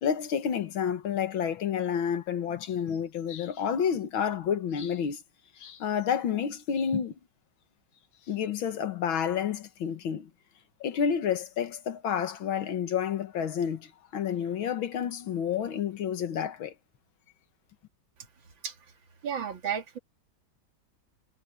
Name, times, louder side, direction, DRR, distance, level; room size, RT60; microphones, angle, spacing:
voice 1, 0.0-5.2 5.6-7.1 8.3-10.3 10.8-16.7, left 8 dB, 85° left, 2.2 m, -30 dB
voice 2, 19.2-20.0, right 8 dB, 75° right, 2.7 m, -32 dB
omnidirectional pair, 2.1 m